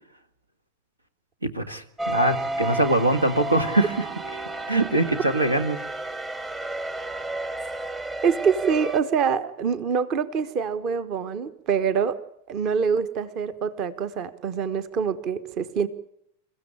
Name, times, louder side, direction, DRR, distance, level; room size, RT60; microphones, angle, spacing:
voice 1, 1.4-3.9 4.7-5.8, right 2 dB, 80° right, 11 dB, 1.8 m, -22 dB
sound 1, 2.0-9.0, right 2 dB, 15° right, 1.2 m, -32 dB
voice 2, 8.2-12.2 12.5-15.9, right 6 dB, 35° right, 14 dB, 1.3 m, -25 dB
28.5 x 15.5 x 8.6 m, 0.76 s
figure-of-eight pair, 90°, 0 cm